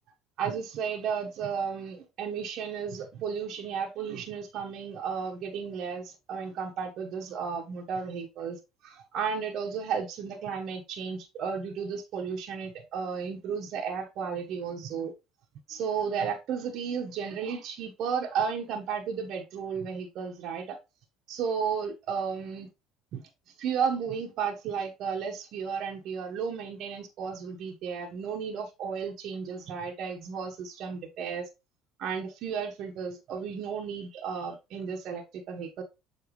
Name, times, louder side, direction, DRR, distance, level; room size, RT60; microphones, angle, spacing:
voice 1, 0.4-15.1 15.7-20.8 21.3-22.7 23.1-23.2 23.6-31.5 32.0-35.8, right 6 dB, 60° right, 1.2 m, -33 dB
7.1 x 4.6 x 3.1 m
hypercardioid pair, 70°, 0 cm